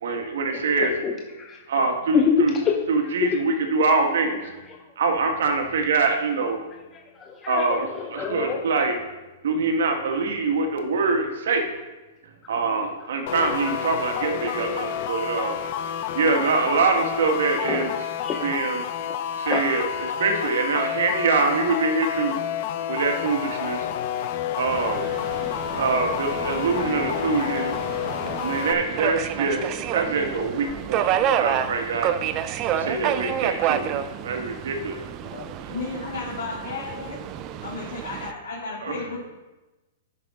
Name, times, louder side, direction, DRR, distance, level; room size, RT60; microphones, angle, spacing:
voice 1, 0.0-0.9 1.7-2.5 2.9-4.4 5.0-6.6 7.5-7.9 8.1-9.0 9.4-11.6 12.5-15.6 16.1-17.9 18.4-18.8 19.4-22.4 22.9-23.9 24.6-25.1 25.8-27.8 28.4-32.1 32.7-35.0 38.8-39.2, right 4 dB, 75° right, 4 dB, 1.6 m, -24 dB
voice 2, 0.8-1.6 2.1-2.7 3.2-3.4 4.7-4.8 6.9-8.6 13.6-13.7 17.7-17.9 18.2-18.5 19.5-19.7 20.6-20.7, left 6 dB, 20° left, 1 dB, 0.8 m, -26 dB
sound 1, 13.3-28.7, left 9 dB, 50° left, 0.6 m, -29 dB
Subway metro underground, 24.7-38.3, right 10 dB, 35° right, 0.5 m, -29 dB
voice 3, 35.3-37.2 37.6-39.2, left 3 dB, 75° left, -7 dB, 2.8 m, -33 dB
9.8 x 6.5 x 3.7 m, 1.1 s
hypercardioid pair, 140°, 0 cm